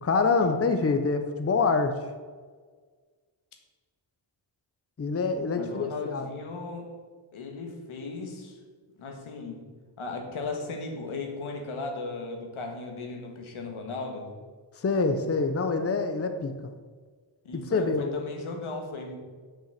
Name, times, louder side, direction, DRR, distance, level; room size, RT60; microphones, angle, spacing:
voice 1, 0.0-2.0 5.0-6.3 14.8-16.5 17.7-18.1, left 4 dB, 30° left, 7 dB, 0.8 m, -25 dB
voice 2, 5.5-7.0 7.3-8.6 9.0-9.7 10.0-14.4 17.4-19.2, left 3 dB, 90° left, 3 dB, 1.7 m, -36 dB
7.9 x 6.3 x 6.6 m, 1.5 s
wide cardioid pair, 95°, 48 cm